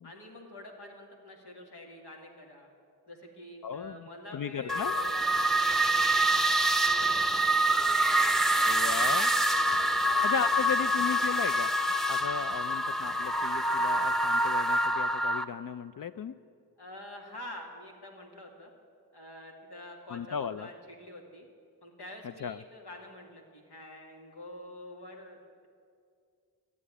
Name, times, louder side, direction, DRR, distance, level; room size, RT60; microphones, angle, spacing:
voice 1, 0.0-2.7 3.1-6.2 6.9-10.7 16.8-18.7 19.1-21.5 21.8-25.7, left 1 dB, 90° left, 0 dB, 2.4 m, -47 dB
voice 2, 3.6-4.0 4.3-4.9 8.6-9.3 10.2-11.7 12.1-16.3 20.1-20.7 22.4-22.6, left 7 dB, 60° left, 12 dB, 0.5 m, -35 dB
sound 1, 4.7-15.4, right 1 dB, ahead, 0.7 m, -26 dB
14.5 x 8.4 x 9.9 m, 2.3 s
wide cardioid pair, 60°, 39 cm